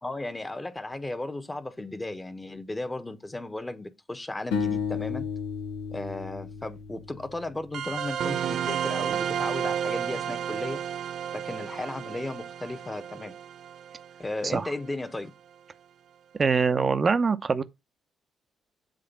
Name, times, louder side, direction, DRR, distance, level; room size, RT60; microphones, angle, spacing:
voice 1, 0.0-5.2 5.9-10.8 11.3-13.3 14.2-15.3, left 2 dB, 20° left, 1.2 m, -35 dB
sound 1, 4.5-7.7, left 6 dB, 75° left, 1.0 m, -32 dB
sound 2, 7.7-14.8, right 9 dB, 60° right, 0.4 m, -32 dB
voice 2, 16.4-17.6, right 5 dB, 40° right, 0.7 m, -23 dB
7.7 x 3.4 x 5.4 m
hypercardioid pair, 45°, 0 cm